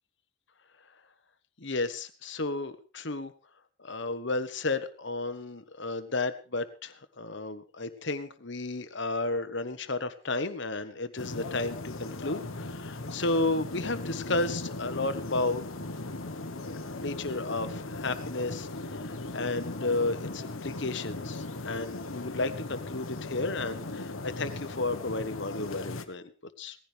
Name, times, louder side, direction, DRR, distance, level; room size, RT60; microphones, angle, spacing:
voice 1, 1.6-3.3 3.8-15.6 16.9-26.2 26.6-26.8, left 2 dB, 55° left, 11 dB, 1.2 m, -33 dB
sound 1, 11.2-26.0, left 2 dB, 75° left, 1.3 m, -38 dB
18.5 x 15.0 x 3.5 m, 0.34 s
head